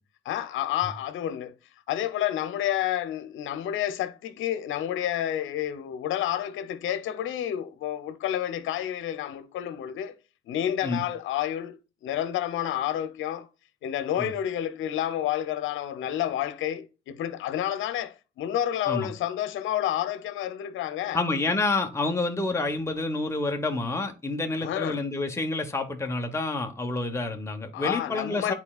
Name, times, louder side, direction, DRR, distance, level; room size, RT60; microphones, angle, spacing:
voice 1, 0.2-1.5 1.9-10.1 10.5-11.8 12.0-13.5 13.8-21.2 24.6-25.0 27.7-28.5, left 11 dB, 80° left, 0.8 m, -29 dB
voice 2, 21.1-28.5, left 2 dB, 15° left, 1.1 m, -28 dB
9.6 x 4.3 x 2.4 m
cardioid pair, 90°, 20 cm